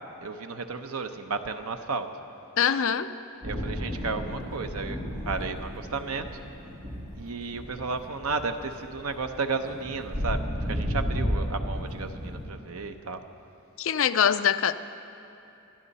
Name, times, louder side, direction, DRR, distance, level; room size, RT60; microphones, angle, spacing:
voice 1, 0.2-2.1 3.4-6.3 7.2-13.2, right 4 dB, 80° right, 7 dB, 0.8 m, -33 dB
voice 2, 2.6-3.1 13.8-14.7, left 8 dB, 60° left, 11 dB, 0.4 m, -23 dB
sound 1, 3.4-12.5, equal, 35° right, 3.7 m, -33 dB
25.0 x 11.0 x 4.2 m, 2.8 s
head